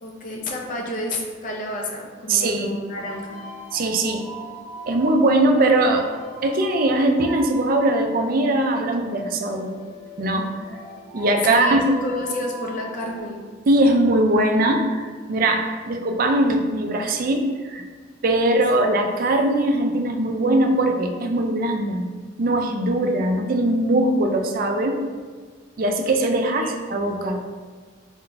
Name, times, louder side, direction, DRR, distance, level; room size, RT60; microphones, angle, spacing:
voice 1, 0.0-3.4 11.5-13.5 26.4-26.8, left 1 dB, 45° left, -1 dB, 0.6 m, -30 dB
voice 2, 2.3-2.7 3.7-4.3 4.9-6.1 6.4-9.7 10.2-10.5 11.1-11.9 13.7-15.0 15.3-17.8 18.2-22.1 22.4-25.0 25.8-26.6 26.9-27.5, right 1 dB, 50° right, 3 dB, 0.4 m, -20 dB
sound 1, 2.8-13.2, right 1 dB, 20° right, 1.3 m, -40 dB
4.3 x 3.8 x 2.2 m, 1.5 s
head